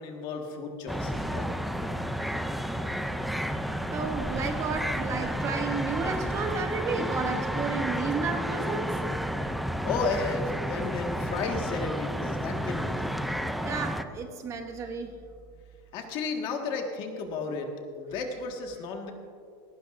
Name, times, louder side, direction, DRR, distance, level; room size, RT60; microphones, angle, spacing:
voice 1, 0.0-1.5 9.8-13.2 15.9-17.7 17.9-19.1, left 4 dB, 40° left, 3 dB, 1.6 m, -33 dB
sound 1, 0.9-14.0, equal, ahead, 0.3 m, -31 dB
voice 2, 3.9-8.9 13.6-15.2, right 5 dB, 25° right, 6 dB, 0.8 m, -32 dB
17.5 x 16.0 x 2.6 m, 2.3 s
supercardioid pair, 160°, 12 cm